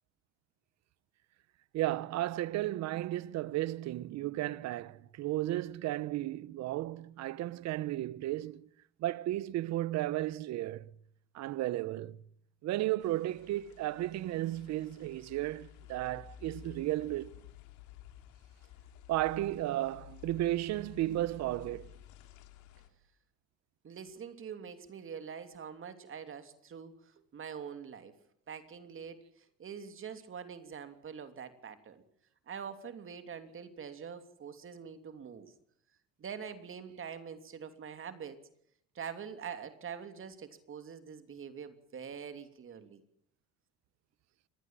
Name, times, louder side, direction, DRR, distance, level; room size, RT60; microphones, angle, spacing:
voice 1, 1.7-8.7 9.0-10.9 11.3-12.2 12.6-17.3 19.1-21.9, right 15 dB, 65° right, 1.0 m, -34 dB
sound 1, 13.0-22.9, left 11 dB, 80° left, 3.3 m, -53 dB
voice 2, 23.8-28.1 28.5-32.0 32.5-35.5 36.2-38.4 38.9-43.0, right 7 dB, 45° right, 2.9 m, -45 dB
25.5 x 19.0 x 7.5 m
supercardioid pair, 85°, 29 cm